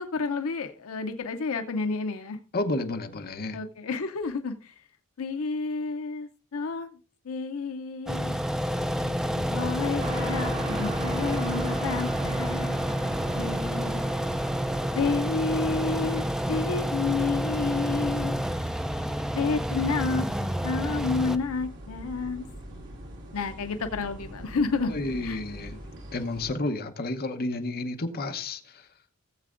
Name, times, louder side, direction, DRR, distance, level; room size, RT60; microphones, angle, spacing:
voice 1, 0.0-2.4 3.5-4.7 5.2-6.9 7.2-8.4 9.0-14.1 14.9-18.4 19.3-20.3 20.6-22.9 23.3-25.4, left 4 dB, 75° left, 0.6 m, -30 dB
voice 2, 2.5-3.6 24.8-25.8 26.1-28.8, left 2 dB, 45° left, 0.9 m, -31 dB
sound 1, 8.1-21.4, equal, ahead, 0.4 m, -29 dB
sound 2, 10.0-26.5, right 1 dB, 60° right, 2.5 m, -41 dB
17.0 x 7.5 x 2.5 m
head